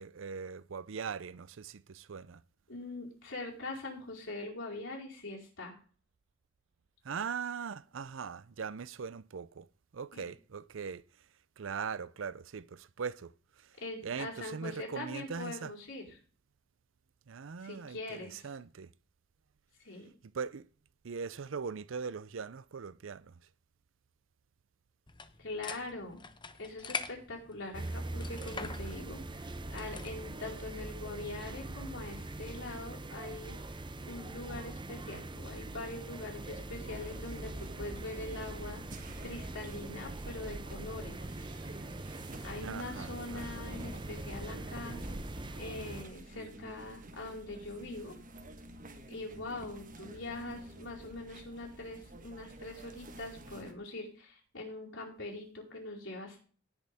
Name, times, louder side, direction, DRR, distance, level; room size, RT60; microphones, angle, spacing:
voice 1, 0.0-2.4 7.0-9.7 9.9-11.0 11.6-13.3 14.0-15.7 17.3-18.9 20.3-20.6 21.0-23.3 42.6-43.4, right 6 dB, 75° right, 0.5 m, -40 dB
voice 2, 2.7-5.8 10.1-10.2 13.8-16.2 17.6-18.5 19.8-20.1 25.4-26.2 26.6-33.6 34.1-38.8 39.2-41.3 42.4-45.0 45.5-48.1 49.1-56.4, left 2 dB, 70° left, 4.6 m, -43 dB
sound 1, 25.1-30.3, left 5 dB, 25° left, 0.8 m, -44 dB
sound 2, 27.7-46.0, right 2 dB, 25° right, 0.7 m, -43 dB
sound 3, 36.8-53.7, right 1 dB, 45° right, 1.5 m, -48 dB
18.5 x 6.7 x 3.5 m
head